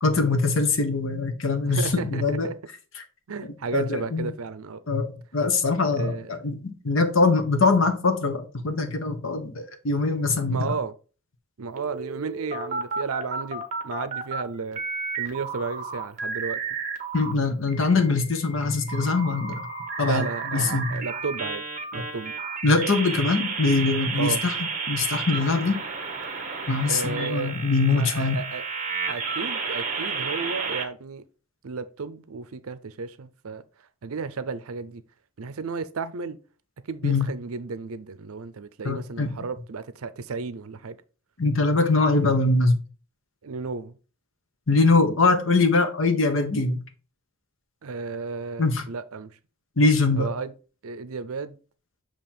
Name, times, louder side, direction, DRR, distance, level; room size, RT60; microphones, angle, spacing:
voice 1, 0.0-2.5 3.7-4.3 4.9-10.7 17.1-19.6 20.0-20.3 20.5-21.0 22.6-24.6 24.9-25.8 26.7-28.4 37.0-37.3 38.8-39.3 41.4-42.8 44.7-46.8 48.6-48.8 49.8-50.3, left 3 dB, 60° left, 1.0 m, -22 dB
voice 2, 1.7-2.5 3.3-4.8 5.9-6.4 10.5-10.9 11.6-14.8 15.2-16.6 20.0-21.6 21.9-22.3 24.1-24.4 26.9-27.5 27.9-28.6 29.1-31.2 31.6-33.6 34.0-35.0 35.4-36.4 36.9-41.0 43.4-44.0 47.8-49.3 50.2-50.5 50.8-51.6, right 4 dB, 75° right, 0.6 m, -33 dB
sound 1, 11.8-14.4 14.7-17.3 17.7-30.8, right 4 dB, 35° right, 0.9 m, -32 dB
7.4 x 2.9 x 4.3 m
head